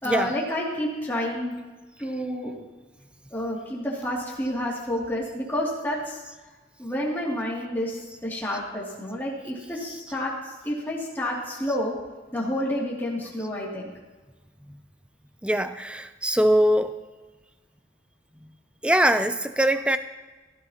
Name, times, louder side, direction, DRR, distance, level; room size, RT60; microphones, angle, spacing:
voice 1, 0.0-1.5 2.0-2.5 3.3-6.2 6.8-11.9 12.3-13.9, equal, 10° left, -5 dB, 2.4 m, -29 dB
voice 2, 15.4-16.9 18.8-20.0, right 1 dB, 5° right, 10 dB, 0.4 m, -22 dB
17.0 x 13.5 x 2.9 m, 1.3 s
head